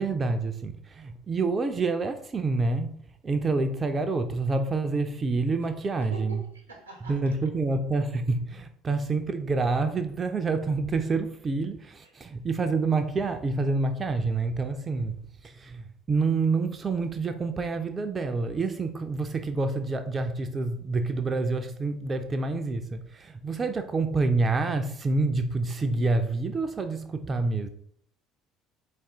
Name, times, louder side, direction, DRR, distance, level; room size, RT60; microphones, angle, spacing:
voice 1, 0.0-3.0 3.2-6.4 7.0-27.7, right 3 dB, 30° right, 0.4 m, -27 dB
voice 2, 6.1-7.2 12.0-12.1, right 2 dB, 85° right, 0.7 m, -43 dB
4.0 x 2.5 x 3.4 m
figure-of-eight pair, 55°, 0 cm